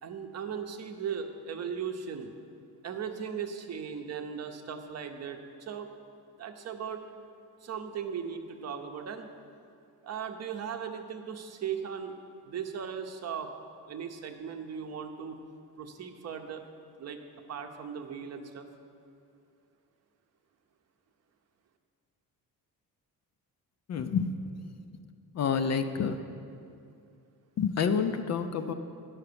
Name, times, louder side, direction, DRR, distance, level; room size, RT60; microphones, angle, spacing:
voice 1, 0.0-2.3 2.8-5.9 6.4-7.0 7.6-9.3 10.0-12.1 12.4-13.5 13.9-15.4 15.8-16.6 17.0-17.2 17.5-18.7, right 7 dB, 45° right, 5 dB, 0.7 m, -37 dB
voice 2, 23.9-24.3 25.4-26.2 27.6-28.7, left 6 dB, 45° left, 8 dB, 0.5 m, -28 dB
10.5 x 5.8 x 6.8 m, 2.5 s
cardioid pair, 150°, 38 cm